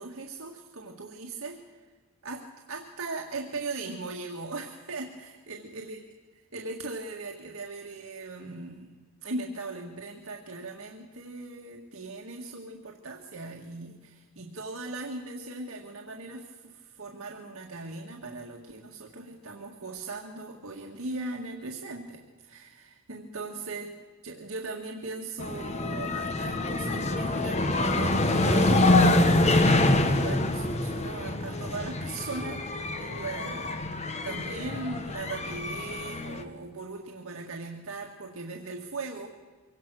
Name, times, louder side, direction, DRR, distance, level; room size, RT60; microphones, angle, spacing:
voice 1, 0.0-1.6 2.2-6.0 6.5-9.0 9.2-39.3, right 3 dB, 80° right, 0 dB, 1.8 m, -39 dB
sound 1, 25.4-36.4, left 2 dB, 30° left, 1.1 m, -26 dB
24.0 x 17.5 x 6.3 m, 1.4 s
head